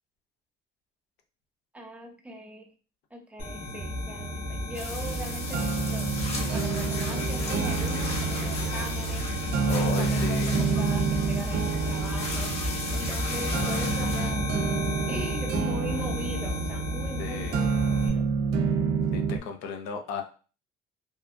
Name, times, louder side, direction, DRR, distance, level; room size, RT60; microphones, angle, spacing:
voice 1, 1.7-2.7 3.1-9.3 9.8-12.5 12.9-14.5 15.1-18.3, equal, 10° right, 2 dB, 0.6 m, -40 dB
sound 1, 3.4-18.1, left 1 dB, 65° left, 0.9 m, -32 dB
sound 2, 4.7-15.1, left 2 dB, 40° left, 0.7 m, -38 dB
sound 3, 5.0-19.4, right 5 dB, 75° right, 0.4 m, -29 dB
voice 2, 9.7-10.6 17.2-17.7 19.1-20.2, left 6 dB, 85° left, 4 dB, 0.5 m, -35 dB
2.7 x 2.3 x 2.5 m, 0.37 s
cardioid pair, 110°, 17 cm